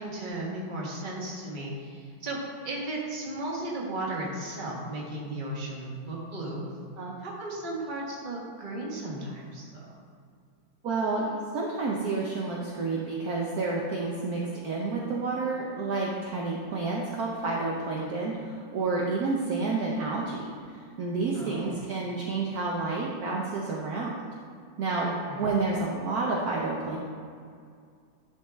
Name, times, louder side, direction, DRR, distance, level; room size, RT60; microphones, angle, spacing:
voice 1, 0.0-6.6 7.2-9.8 21.3-21.7 25.0-25.4, right 1 dB, 30° right, -3 dB, 1.3 m, -35 dB
voice 2, 10.8-20.5 21.0-24.2 24.8-25.1 25.4-27.0, right 3 dB, 60° right, -3 dB, 1.1 m, -30 dB
11.0 x 4.7 x 3.5 m, 2.2 s
omnidirectional pair, 2.1 m